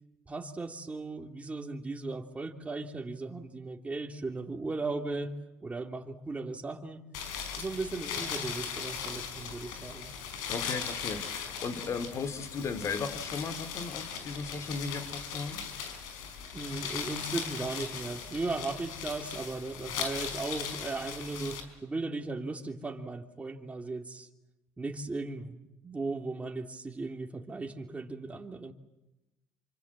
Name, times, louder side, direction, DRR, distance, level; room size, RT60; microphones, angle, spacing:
voice 1, 0.3-5.3 5.6-7.0 7.5-10.1 16.5-24.3 24.8-28.7, right 3 dB, 20° right, 4 dB, 3.2 m, -37 dB
sound 1, 7.1-21.6, left 7 dB, 80° left, 5.0 m, -38 dB
voice 2, 10.5-15.6, left 5 dB, 45° left, 13 dB, 3.3 m, -36 dB
28.0 x 25.5 x 7.6 m, 0.98 s
supercardioid pair, 80°, 7 cm